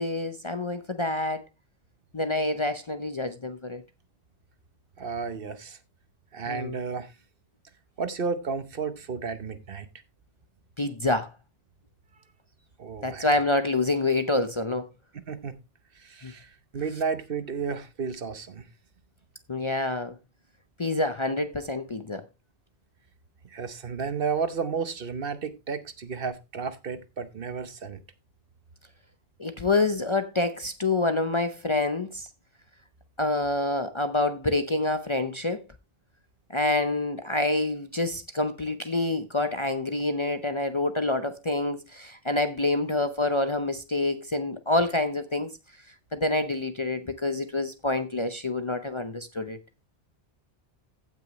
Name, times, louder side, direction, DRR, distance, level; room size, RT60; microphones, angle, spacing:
voice 1, 0.0-1.4 2.1-3.8 6.5-6.8 10.8-11.3 13.0-14.9 16.2-16.3 19.5-20.1 20.8-22.2 29.4-32.3 33.2-35.6 36.5-45.5 46.1-49.6, left 2 dB, 30° left, 0.6 m, -27 dB
voice 2, 5.0-5.8 6.3-7.1 8.0-9.9 12.8-13.3 15.3-15.6 16.0-18.6 23.5-28.0, right 5 dB, 55° right, 1.1 m, -32 dB
15.5 x 6.1 x 3.1 m
omnidirectional pair, 1.1 m